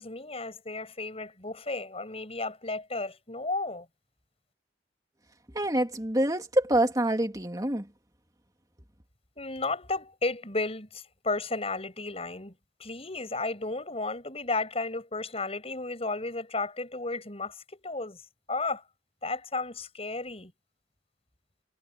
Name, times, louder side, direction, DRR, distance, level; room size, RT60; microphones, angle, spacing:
voice 1, 0.0-3.8 9.4-12.5 12.8-18.2 18.5-18.8 19.2-20.5, left 3 dB, 30° left, 6.7 m, -33 dB
voice 2, 5.5-7.9, right 1 dB, 20° right, 2.9 m, -26 dB
head